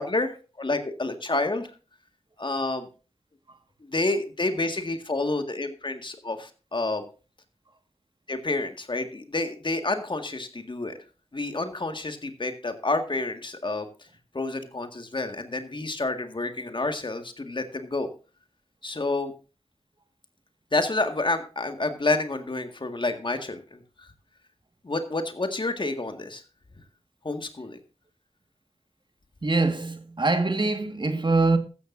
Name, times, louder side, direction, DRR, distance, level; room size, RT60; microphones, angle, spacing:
voice 1, 0.0-1.7 2.4-2.9 3.8-7.0 8.3-11.0 11.3-13.9 14.3-18.1 18.8-19.3 20.7-24.1 24.8-26.4 27.2-27.8, left 2 dB, 45° left, 1.9 m, -29 dB
voice 2, 29.4-31.6, right 3 dB, 45° right, 1.8 m, -24 dB
14.5 x 13.5 x 2.7 m
cardioid pair, 40°, 11 cm